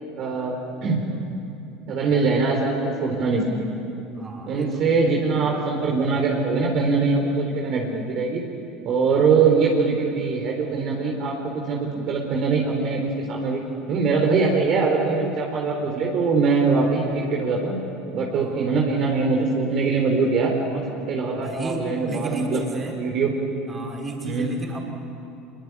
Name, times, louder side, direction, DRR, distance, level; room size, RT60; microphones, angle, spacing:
voice 1, 0.2-1.0 1.9-3.7 4.5-8.5 8.8-11.4 11.7-13.6 13.9-17.8 18.1-22.6 23.0-23.3 24.2-24.5, right 4 dB, 50° right, -1 dB, 4.2 m, -22 dB
voice 2, 4.2-4.9 18.3-18.7 21.4-23.0 23.7-24.8, right 2 dB, 25° right, 1 dB, 5.7 m, -33 dB
25.5 x 22.5 x 9.9 m, 2.8 s
hypercardioid pair, 75°, 0 cm